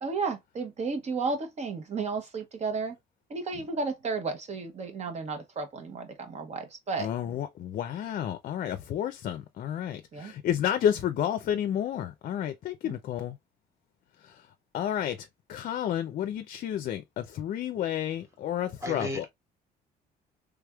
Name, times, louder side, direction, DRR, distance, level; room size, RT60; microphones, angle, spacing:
voice 1, 0.0-3.0 3.3-7.1 10.1-10.3 12.8-13.0, right 4 dB, 40° right, 1.0 m, -33 dB
voice 2, 7.0-13.4 14.7-19.3, left 10 dB, 55° left, 0.5 m, -31 dB
voice 3, 18.6-19.3, equal, 15° right, 1.3 m, -36 dB
3.4 x 3.3 x 2.2 m
cardioid pair, 110°, 17 cm